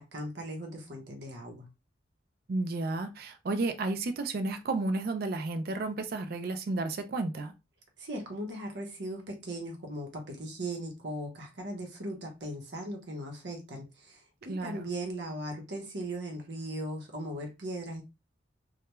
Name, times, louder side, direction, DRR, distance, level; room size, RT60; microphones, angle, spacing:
voice 1, 0.0-1.7 8.0-18.0, right 1 dB, 70° right, 0.8 m, -38 dB
voice 2, 2.5-7.5 14.5-14.9, right 2 dB, 50° right, 0.4 m, -32 dB
2.2 x 2.2 x 3.0 m
head